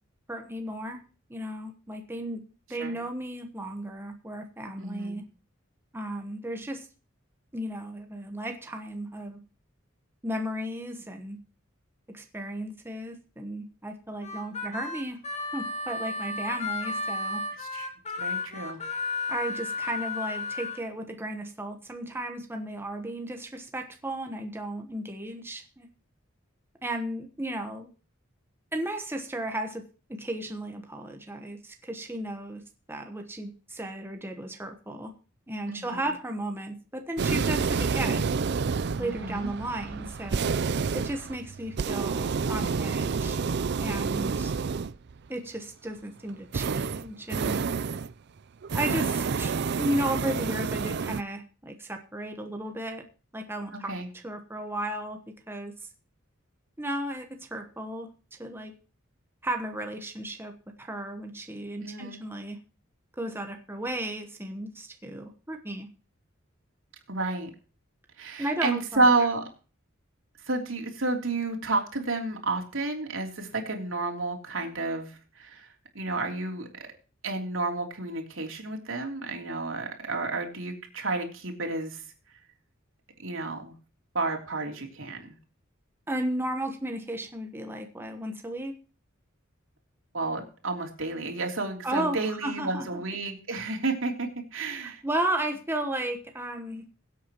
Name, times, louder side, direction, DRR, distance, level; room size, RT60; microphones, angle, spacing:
voice 1, 0.3-1.0 1.3-2.4 2.7-5.2 5.9-6.9 7.5-9.4 10.2-11.4 12.1-15.2 15.5-17.4 19.3-25.9 26.8-27.9 28.7-29.8 30.1-32.6 32.9-35.1 35.5-38.3 39.0-40.5 40.9-43.4 43.8-44.5 45.3-47.6 48.7-53.0 53.3-55.2 55.5-55.7 56.8-58.1 58.4-58.7 59.4-60.5 60.8-62.6 63.2-65.9 68.4-69.1 86.1-88.7 91.8-93.0 93.5-93.6 94.8-96.8, right 1 dB, 10° right, 4 dB, 1.1 m, -34 dB
voice 2, 4.8-5.2 17.6-17.9 18.2-18.8 35.7-36.1 38.9-39.5 53.7-54.1 61.8-62.2 67.1-67.5 68.2-69.4 70.5-75.7 75.9-76.7 77.2-82.0 83.2-83.7 84.1-85.4 90.1-95.0, right 3 dB, 75° right, 2 dB, 3.1 m, -30 dB
Harmonica, 14.2-20.8, left 3 dB, 35° left, 1.9 m, -33 dB
sound 1, 37.2-45.1 46.5-48.1 48.6-51.2, right 5 dB, 55° right, 0.5 m, -29 dB
22.0 x 8.4 x 3.0 m, 0.37 s
head